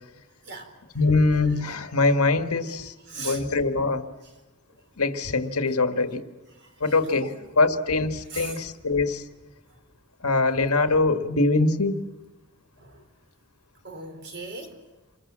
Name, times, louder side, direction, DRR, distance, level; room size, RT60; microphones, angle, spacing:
voice 1, 1.0-4.0 5.0-6.2 6.8-7.3 7.6-9.2 10.2-11.9, left 3 dB, 75° left, 1.8 m, -23 dB
voice 2, 3.1-3.6 4.2-4.3 6.5-7.4 8.3-8.6 10.5-10.6 12.8-13.0 13.8-14.8, right 3 dB, 50° right, 4.4 m, -40 dB
28.0 x 22.5 x 7.5 m
head